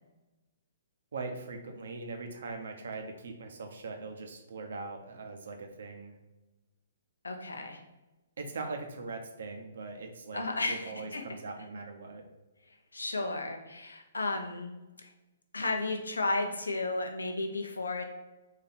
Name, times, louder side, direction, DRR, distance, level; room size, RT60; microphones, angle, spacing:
voice 1, 1.1-6.2 8.4-12.2, right 3 dB, 70° right, 4 dB, 0.8 m, -41 dB
voice 2, 7.2-7.8 10.3-11.2 12.9-14.7 15.0-15.1 15.5-18.0, left 2 dB, 90° left, 4 dB, 0.7 m, -33 dB
4.1 x 2.7 x 4.2 m, 1.1 s
hypercardioid pair, 130°, 0 cm